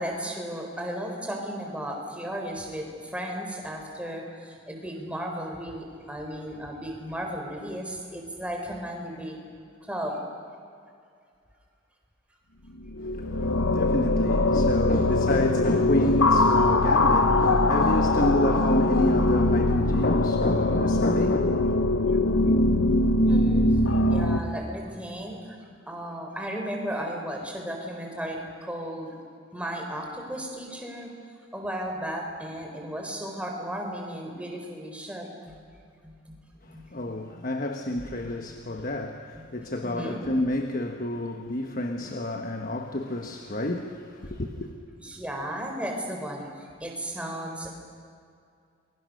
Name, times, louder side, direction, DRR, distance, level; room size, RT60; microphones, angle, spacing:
voice 1, 0.0-9.4 9.8-10.2 22.0-22.3 23.2-25.6 25.9-29.1 29.5-31.1 31.5-35.6 36.0-36.4 36.7-37.2 38.2-38.4 38.7-38.8 39.3-39.5 39.8-40.2 45.0-47.7, equal, 5° right, 4.1 m, -35 dB
sound 1, 12.8-24.4, left 2 dB, 90° left, 1.3 m, -22 dB
voice 2, 13.0-21.5 36.6-44.7, left 1 dB, 45° left, 1.2 m, -29 dB
29.0 x 22.5 x 6.6 m
head